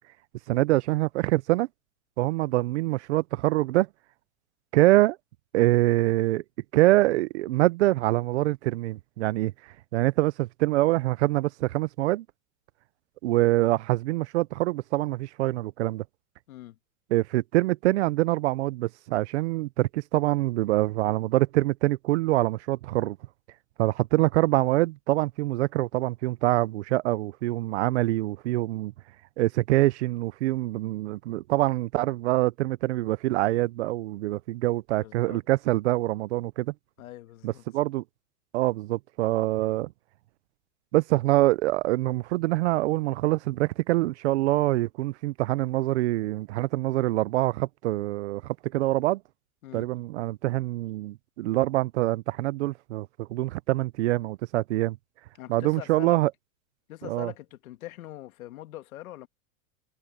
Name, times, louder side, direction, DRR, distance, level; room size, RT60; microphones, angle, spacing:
voice 1, 0.5-1.7 2.2-3.9 4.7-5.2 5.5-6.4 6.7-9.5 9.9-12.2 13.2-16.0 17.1-23.2 23.8-28.9 29.4-36.7 37.4-38.0 38.5-39.9 40.9-49.2 49.7-55.0 55.5-56.3 57.1-57.3, right 18 dB, 55° right, 0.5 m, -25 dB
voice 2, 16.5-16.8 35.0-35.4 37.0-37.6 49.6-49.9 55.4-56.2 56.9-59.3, left 15 dB, 75° left, 1.9 m, -42 dB
supercardioid pair, 165°, 42 cm